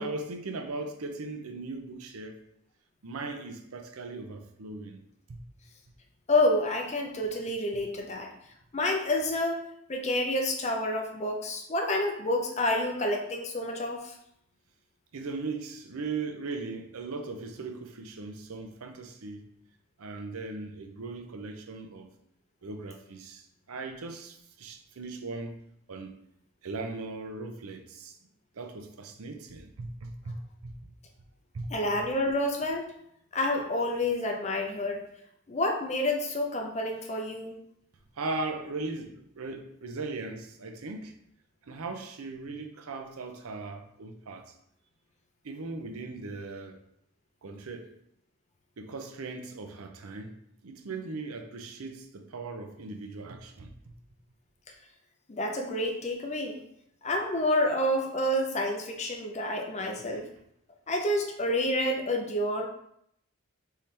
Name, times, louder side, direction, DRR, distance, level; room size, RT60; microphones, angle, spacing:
voice 1, 0.0-2.4 3.0-5.0 5.3-5.4 15.1-19.4 20.0-22.1 22.6-25.6 25.9-26.2 26.6-28.2 28.6-30.4 30.6-30.8 31.5-32.0 38.2-41.1 41.7-44.5 45.4-46.8 47.4-47.9 48.8-50.4 50.6-53.9 60.0-60.2, right 3 dB, 80° right, 6 dB, 0.6 m, -38 dB
voice 2, 6.3-8.3 8.7-9.6 9.9-14.1 31.7-32.8 33.3-35.1 35.5-37.6 55.3-56.6 57.0-60.2 60.9-62.7, left 1 dB, 30° left, 3 dB, 0.6 m, -28 dB
4.2 x 3.8 x 3.3 m, 0.73 s
head